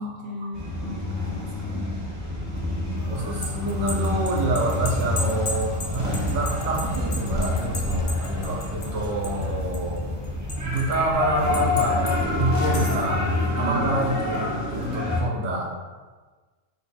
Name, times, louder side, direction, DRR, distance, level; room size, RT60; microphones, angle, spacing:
voice 1, 0.0-1.9 13.6-14.1, left 1 dB, 55° right, -2 dB, 0.8 m, -36 dB
sound 1, 0.5-15.2, left 2 dB, 25° right, 0.4 m, -27 dB
voice 2, 3.1-10.1 10.6-13.2 13.6-15.7, right 2 dB, 90° right, 0 dB, 1.1 m, -27 dB
sound 2, 3.2-9.5 9.7-10.9 11.5-12.1 12.6-13.1, left 1 dB, 75° left, 0.3 m, -35 dB
3.3 x 2.2 x 4.0 m, 1.3 s
omnidirectional pair, 1.4 m